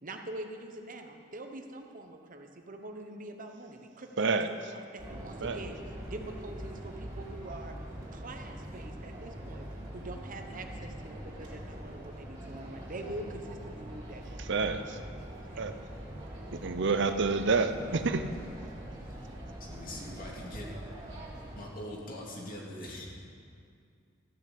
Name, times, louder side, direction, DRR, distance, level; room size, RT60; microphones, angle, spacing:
voice 1, 0.0-5.8 6.1-7.8 8.1-9.7 9.9-14.4 15.5-15.6, right 2 dB, 45° right, 4 dB, 1.0 m, -44 dB
voice 2, 4.2-4.5 5.4-5.6 14.4-15.0 15.5-15.7 16.5-18.2, right 4 dB, 65° right, 9 dB, 0.7 m, -28 dB
sound 1, 5.0-21.6, right 1 dB, 30° right, 3.7 m, -43 dB
voice 3, 18.7-19.3 19.6-20.7 21.6-23.1, left 1 dB, 50° left, -3 dB, 2.6 m, -43 dB
14.5 x 6.9 x 8.4 m, 2.3 s
head